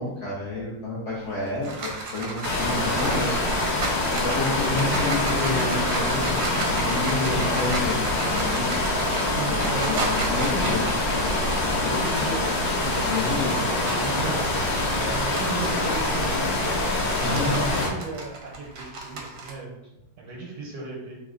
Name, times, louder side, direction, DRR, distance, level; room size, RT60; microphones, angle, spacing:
voice 1, 0.0-3.4 4.2-8.8 9.5-10.8 13.0-13.7 17.2-17.8, left 2 dB, 65° left, -7 dB, 0.7 m, -29 dB
sound 1, 1.2-14.2 14.6-19.5, right 3 dB, 65° right, 0.8 m, -34 dB
sound 2, 2.4-17.9, left 2 dB, 90° left, 1.4 m, -25 dB
voice 2, 9.3-10.0 11.7-13.2 13.8-16.7 17.2-19.8 20.2-21.2, right 3 dB, 90° right, -3 dB, 1.4 m, -36 dB
3.2 x 2.0 x 3.6 m, 0.88 s
omnidirectional pair, 1.8 m